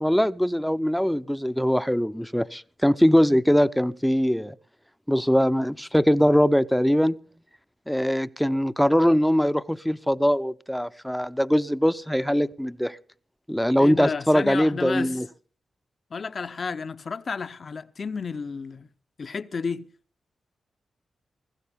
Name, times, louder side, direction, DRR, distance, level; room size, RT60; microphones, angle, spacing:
voice 1, 0.0-4.5 5.1-7.2 7.9-13.0 13.5-15.2, equal, 5° left, 0.7 m, -22 dB
voice 2, 13.8-15.2 16.1-18.9 19.2-19.9, left 5 dB, 55° left, 0.8 m, -32 dB
19.0 x 15.5 x 3.6 m
cardioid pair, 50°, 0 cm